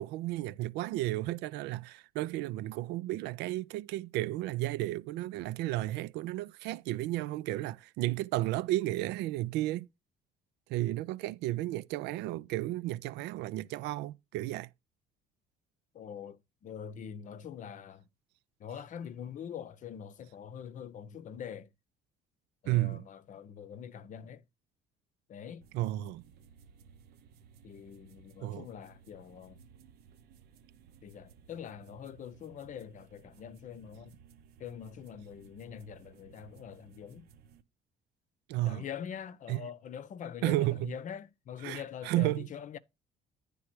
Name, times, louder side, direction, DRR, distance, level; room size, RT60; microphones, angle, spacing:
voice 1, 0.0-9.9 10.7-14.7 22.7-23.1 25.7-26.2 28.4-28.7 38.5-38.8 39.5-39.6 40.4-40.9 41.6-42.5, right 16 dB, 90° right, 0.4 m, -33 dB
voice 2, 15.9-18.1 18.6-21.7 22.6-24.4 25.3-25.7 27.6-29.6 31.0-34.1 34.6-37.3 38.6-42.8, left 8 dB, 50° left, 0.7 m, -44 dB
sound 1, 25.6-37.6, right 7 dB, 70° right, 0.8 m, -59 dB
9.8 x 3.4 x 6.0 m
cardioid pair, 110°, 17 cm